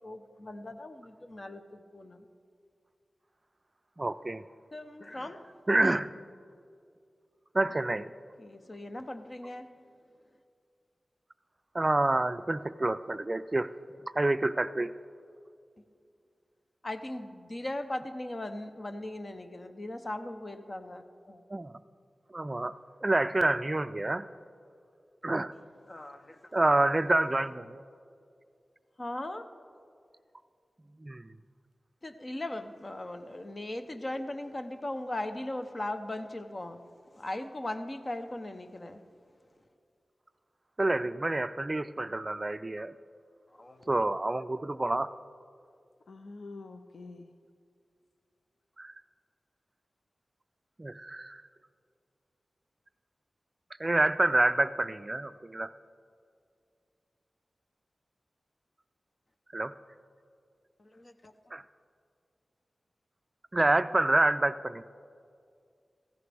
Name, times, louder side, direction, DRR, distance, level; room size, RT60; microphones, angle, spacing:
voice 1, 0.0-2.3 4.7-5.4 8.4-9.8 16.8-21.4 25.9-26.6 29.0-29.5 32.0-36.8 37.1-39.0 43.5-43.9 60.8-61.3, left 1 dB, 35° left, 8 dB, 0.8 m, -39 dB
voice 2, 4.0-4.4 5.7-6.1 7.5-8.1 11.7-13.7 14.2-14.9 21.5-21.8 22.3-22.7 23.0-24.2 25.2-25.5 26.5-27.8 31.0-31.3 40.8-42.9 43.9-45.1 48.8-48.9 50.8-51.4 53.8-55.7 59.5-59.7 61.5-61.6 63.5-64.8, right 2 dB, 30° right, 13 dB, 0.3 m, -27 dB
voice 3, 46.1-47.3, left 3 dB, 85° left, 6 dB, 0.5 m, -46 dB
16.5 x 15.0 x 3.4 m, 2.3 s
wide cardioid pair, 75°, 0 cm